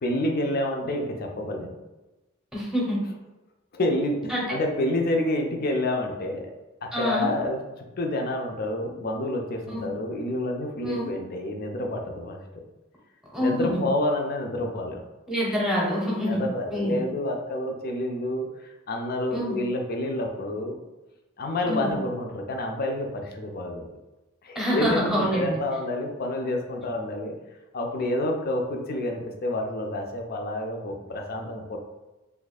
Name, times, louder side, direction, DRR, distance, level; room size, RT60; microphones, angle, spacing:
voice 1, 0.0-1.7 3.7-6.5 6.8-12.6 13.4-15.0 16.3-20.8 21.4-24.0 24.4-27.4 27.7-31.8, left 1 dB, 50° left, 2 dB, 0.5 m, -28 dB
voice 2, 2.5-3.0 4.3-4.6 6.9-7.3 9.7-9.9 10.8-11.1 13.3-13.8 15.3-16.4 16.7-17.0 19.3-19.6 21.7-22.0 24.5-25.6, equal, 5° right, -5 dB, 0.9 m, -26 dB
2.6 x 2.4 x 4.1 m, 1.1 s
head